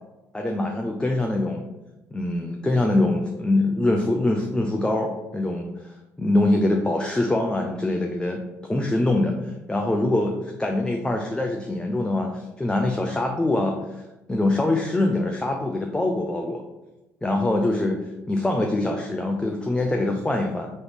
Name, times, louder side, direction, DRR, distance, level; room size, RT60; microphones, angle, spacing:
voice 1, 0.3-1.7 2.1-8.4 8.7-16.6 17.2-18.0 18.3-20.7, left 2 dB, 10° left, 2 dB, 0.5 m, -24 dB
3.8 x 3.0 x 3.4 m, 1.0 s
hypercardioid pair, 55°, 8 cm